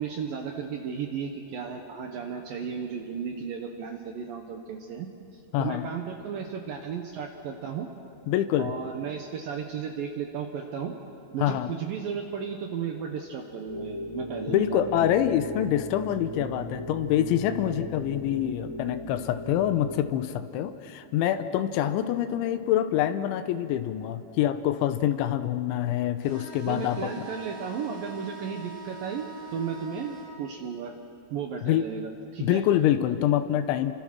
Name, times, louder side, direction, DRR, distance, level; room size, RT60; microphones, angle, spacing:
voice 1, 0.0-7.9 8.6-11.0 11.3-15.1 26.7-29.3 29.5-31.0 31.3-32.6, right 7 dB, 80° right, 3 dB, 2.0 m, -34 dB
voice 2, 5.5-5.9 8.3-8.7 11.4-11.7 14.5-27.1 31.6-31.9 32.4-33.9, left 11 dB, 80° left, 10 dB, 3.0 m, -26 dB
sound 1, 13.7-19.9, equal, 25° left, 3.9 m, -37 dB
sound 2, 26.2-30.3, right 2 dB, 25° right, 4.6 m, -42 dB
29.0 x 25.0 x 6.1 m, 2.7 s
omnidirectional pair, 5.8 m